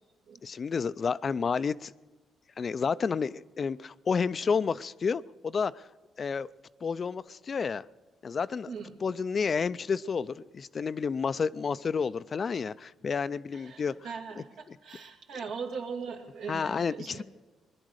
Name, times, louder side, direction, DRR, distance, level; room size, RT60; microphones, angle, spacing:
voice 1, 0.4-1.9 2.6-5.8 6.2-6.5 6.8-7.8 8.2-8.7 9.0-13.9 16.5-17.2, left 5 dB, 45° left, 16 dB, 0.4 m, -30 dB
voice 2, 13.5-17.2, right 5 dB, 80° right, 2 dB, 2.3 m, -40 dB
20.5 x 11.0 x 6.5 m, 1.2 s
cardioid pair, 75°, 0 cm